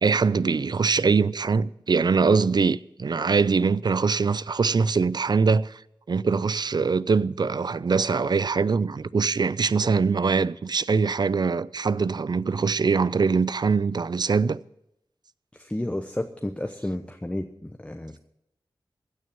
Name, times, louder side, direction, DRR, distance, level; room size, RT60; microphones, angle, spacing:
voice 1, 0.0-5.8 6.1-14.6, right 5 dB, 55° right, 0.4 m, -23 dB
voice 2, 15.5-18.2, left 1 dB, 15° left, 0.9 m, -32 dB
16.0 x 6.4 x 8.6 m
wide cardioid pair, 55°, 9 cm